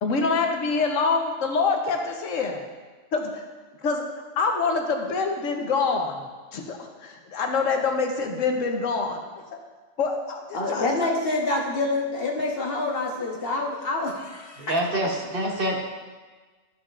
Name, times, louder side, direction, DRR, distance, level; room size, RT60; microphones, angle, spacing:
voice 1, 0.0-2.6 3.1-3.4 3.8-4.0 4.4-6.2 6.5-9.2 9.5-9.6 10.0-10.9, left 4 dB, 85° left, 3 dB, 1.2 m, -25 dB
voice 2, 10.5-14.8, left 2 dB, 50° left, -1 dB, 1.2 m, -27 dB
voice 3, 14.6-15.8, right 1 dB, 50° right, 0 dB, 1.1 m, -26 dB
12.5 x 5.7 x 2.4 m, 1.3 s
omnidirectional pair, 1.3 m